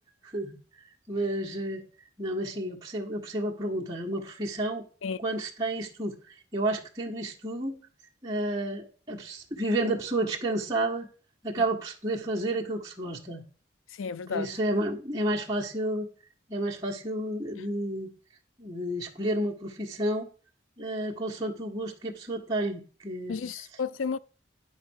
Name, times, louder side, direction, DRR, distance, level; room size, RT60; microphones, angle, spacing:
voice 1, 0.2-0.6 1.1-1.8 2.2-4.8 5.2-6.1 6.5-7.8 8.2-11.1 11.4-13.4 14.3-16.1 16.5-18.1 18.6-20.3 20.8-23.4, right 1 dB, 20° right, 1.5 m, -31 dB
voice 2, 13.9-14.5 23.3-24.2, left 5 dB, 85° left, 0.5 m, -32 dB
10.0 x 4.2 x 6.4 m
head